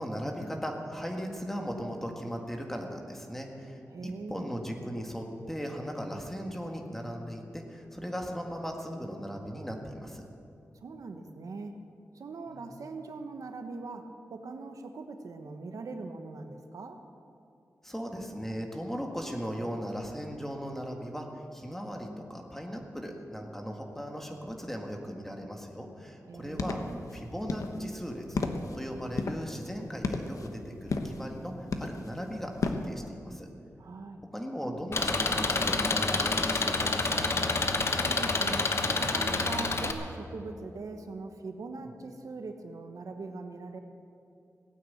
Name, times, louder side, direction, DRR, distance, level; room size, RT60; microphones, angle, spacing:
voice 1, 0.0-10.2 12.5-12.7 17.8-26.8 27.1-28.4 28.7-31.5 31.8-33.5 34.3-37.4 41.8-41.9, equal, 5° left, 1 dB, 1.8 m, -38 dB
voice 2, 3.9-4.5 10.7-11.7 12.1-17.0 26.3-27.0 33.8-34.2 37.9-43.8, right 3 dB, 80° right, 6 dB, 1.1 m, -41 dB
sound 1, 26.4-32.9, left 3 dB, 75° left, 1.1 m, -35 dB
Engine, 34.9-39.9, left 3 dB, 50° left, 1.1 m, -28 dB
17.0 x 9.3 x 8.7 m, 2.6 s
wide cardioid pair, 110°, 6 cm